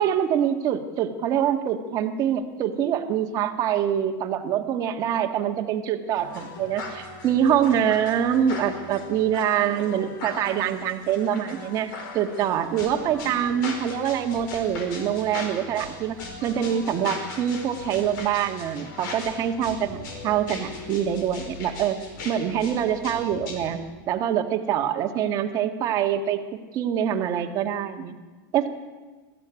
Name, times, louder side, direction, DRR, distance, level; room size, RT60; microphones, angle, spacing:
voice 1, 0.0-20.0 20.2-22.0 22.2-26.4 26.7-28.2 28.5-28.7, right 9 dB, 35° right, 5 dB, 1.6 m, -25 dB
sound 1, 6.1-23.8, left 3 dB, 75° left, 5.2 m, -39 dB
20.5 x 14.5 x 9.6 m, 1.3 s
supercardioid pair, 165°, 11 cm